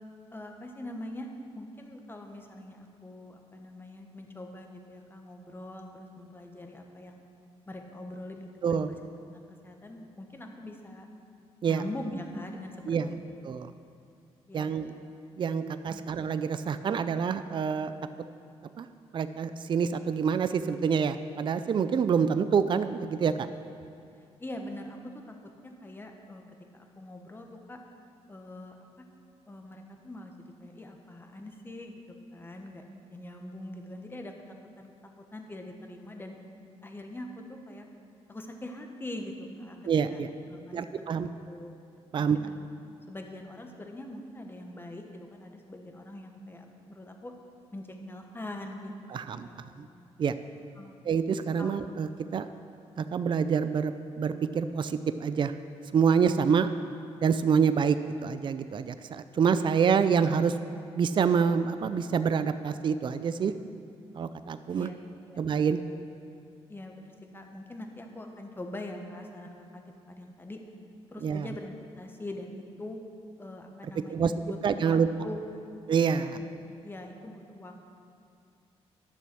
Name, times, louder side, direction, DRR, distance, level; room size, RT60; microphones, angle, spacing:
voice 1, 0.3-1.3 1.5-7.2 7.7-9.0 9.3-11.1 11.7-13.4 14.5-14.9 15.9-16.1 24.4-25.2 25.6-26.4 26.7-27.8 28.3-29.0 29.5-32.0 32.3-34.3 34.8-34.9 35.3-36.4 36.8-37.9 38.3-39.3 39.6-40.2 40.5-41.1 41.4-41.7 42.2-42.7 43.1-47.3 47.7-48.9 49.4-49.8 50.8-51.0 51.6-51.8 64.8-65.0 65.3-65.4 66.7-70.6 71.1-73.0 73.4-75.6 76.3-76.5 76.8-77.8, left 1 dB, 20° left, 3 dB, 1.2 m, -43 dB
voice 2, 8.6-8.9 11.6-11.8 12.9-13.1 13.4-13.7 14.5-14.9 15.4-17.9 18.8-18.9 19.1-23.5 39.9-40.3 40.7-41.3 42.1-42.4 49.1-49.5 49.8-49.9 50.2-50.4 51.1-52.5 53.0-55.5 55.9-56.7 57.2-60.6 61.0-63.5 64.1-64.9 65.4-65.8 71.2-71.5 74.1-74.3 74.6-75.1 75.9-76.4, right 6 dB, 45° right, 11 dB, 0.4 m, -27 dB
11.0 x 7.0 x 6.1 m, 2.5 s
cardioid pair, 85°, 11 cm